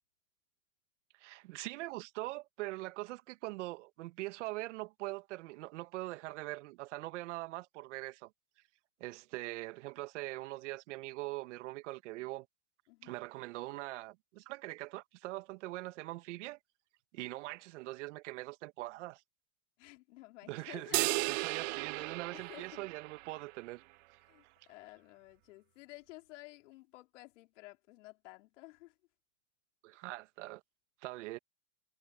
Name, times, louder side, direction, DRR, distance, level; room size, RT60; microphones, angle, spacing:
voice 1, 1.2-8.3 9.0-12.5 13.0-16.6 17.1-19.2 20.5-23.8 29.8-30.6 31.0-31.4, right 19 dB, 60° right, 1.8 m, -42 dB
voice 2, 12.9-13.2 19.8-21.3 22.3-22.8 24.3-28.9, left 20 dB, 60° left, 3.2 m, -53 dB
sound 1, 20.9-23.5, right 25 dB, 35° right, 0.4 m, -35 dB
hypercardioid pair, 120°, 41 cm